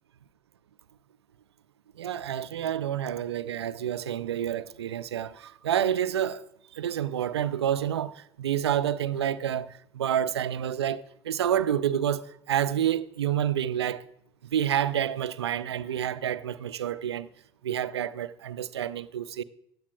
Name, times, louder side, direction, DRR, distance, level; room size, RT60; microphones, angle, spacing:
voice 1, 2.0-6.4 6.7-14.1 14.5-17.3 17.6-19.4, right 10 dB, 80° right, 0.4 m, -28 dB
15.5 x 10.0 x 2.3 m
figure-of-eight pair, 60°, 14 cm